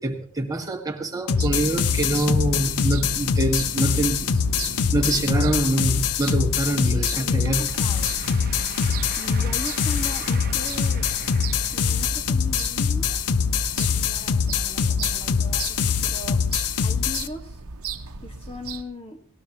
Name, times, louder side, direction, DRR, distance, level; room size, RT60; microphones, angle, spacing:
voice 1, 0.0-4.3 4.9-7.7, right 2 dB, 15° right, 2 dB, 1.7 m, -25 dB
sound 1, 1.3-17.3, left 6 dB, 80° left, 0.7 m, -24 dB
sound 2, 1.4-18.8, right 4 dB, 65° right, 1.0 m, -36 dB
voice 2, 6.9-8.1 9.2-11.0 11.7-13.2 13.8-16.4 16.8-17.6 18.2-19.2, left 2 dB, 25° left, 4 dB, 1.7 m, -38 dB
sound 3, 7.4-12.2, right 7 dB, 45° right, 1.0 m, -41 dB
19.0 x 18.5 x 2.9 m, 0.43 s
head